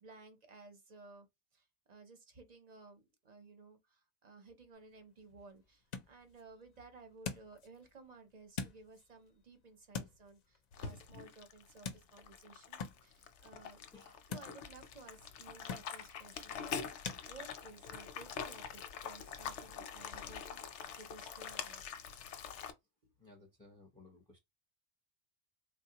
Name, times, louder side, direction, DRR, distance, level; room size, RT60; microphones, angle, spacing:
voice 1, 0.0-1.3 1.5-13.9 14.3-21.9 23.0-23.1, right 3 dB, 45° right, 0.7 m, -57 dB
sound 1, 4.7-17.2, left 6 dB, 55° left, 0.5 m, -49 dB
sound 2, 10.7-22.7, left 7 dB, 85° left, 0.9 m, -45 dB
voice 2, 13.9-14.3 22.2-22.3 23.2-24.4, left 3 dB, 5° left, 0.6 m, -60 dB
3.4 x 2.2 x 2.8 m
omnidirectional pair, 1.2 m